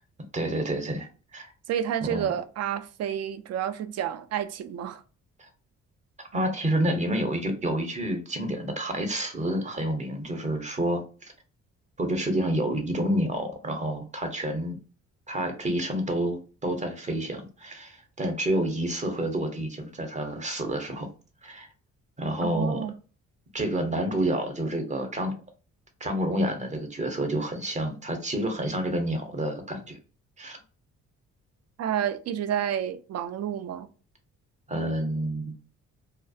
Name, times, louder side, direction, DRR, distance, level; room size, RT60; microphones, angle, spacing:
voice 1, 0.3-1.5 2.0-2.3 5.4-5.5 6.3-11.3 12.0-14.8 15.3-21.1 21.4-21.7 22.2-22.8 23.5-25.3 26.0-30.0 30.4-30.6 34.7-35.5, right 1 dB, 25° right, 0.7 m, -29 dB
voice 2, 1.7-5.0 22.4-22.9 31.8-33.9, right 9 dB, 55° right, 0.4 m, -30 dB
2.3 x 2.0 x 2.5 m
cardioid pair, 90°, 30 cm